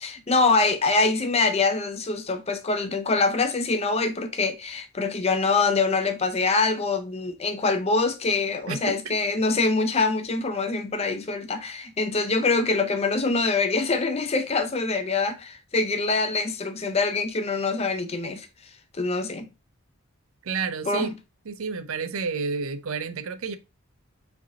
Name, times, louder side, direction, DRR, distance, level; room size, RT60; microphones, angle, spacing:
voice 1, 0.0-18.5 19.0-19.5 20.9-21.2, left 3 dB, 30° left, 0.5 m, -24 dB
voice 2, 8.7-9.1 20.4-21.2 21.5-23.6, right 5 dB, 80° right, 0.5 m, -30 dB
4.8 x 3.3 x 2.7 m
head